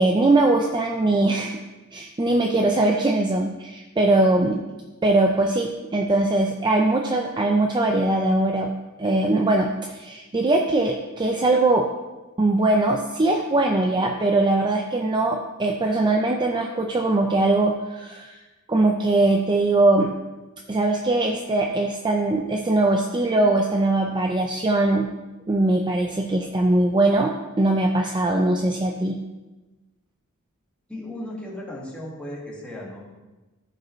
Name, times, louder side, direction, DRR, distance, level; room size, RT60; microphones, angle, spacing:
voice 1, 0.0-1.6 1.9-4.6 5.0-8.7 9.0-11.9 12.4-18.4 18.7-20.1 20.7-25.1 25.5-27.3 27.6-29.2, right 2 dB, 20° right, 2 dB, 0.5 m, -21 dB
voice 2, 30.9-33.1, left 1 dB, 5° left, -5 dB, 1.8 m, -36 dB
13.5 x 5.3 x 3.1 m, 1.1 s
head